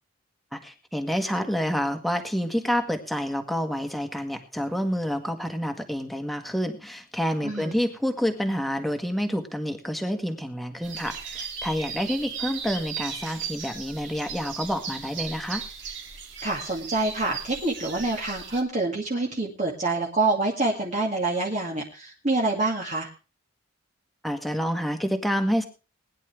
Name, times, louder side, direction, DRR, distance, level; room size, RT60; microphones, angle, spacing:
voice 1, 0.5-15.6 24.2-25.6, equal, ahead, 5 dB, 1.7 m, -28 dB
voice 2, 7.4-7.7 16.4-23.1, right 2 dB, 35° right, -1 dB, 2.3 m, -26 dB
sound 1, 10.8-18.6, right 6 dB, 65° right, 2.8 m, -37 dB
21.0 x 10.5 x 3.4 m, 0.34 s
head